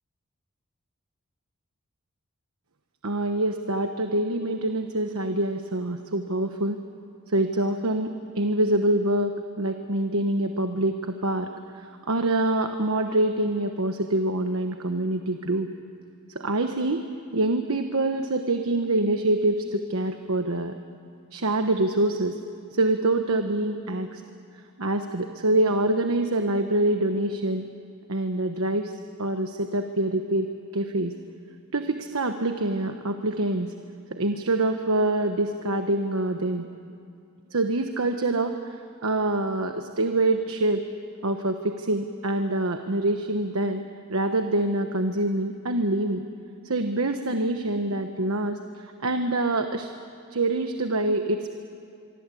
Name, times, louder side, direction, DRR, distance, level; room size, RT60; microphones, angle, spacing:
voice 1, 3.0-6.8 7.3-15.7 16.3-17.0 17.3-20.7 21.3-22.4 22.7-24.2 24.8-27.7 28.1-28.9 29.2-30.5 30.7-31.1 31.7-33.7 34.1-36.6 37.5-38.7 39.0-40.8 41.2-43.8 44.1-46.3 46.6-49.9 50.3-51.5, right 2 dB, 85° right, 6 dB, 1.2 m, -25 dB
24.5 x 24.5 x 8.5 m, 2.4 s
head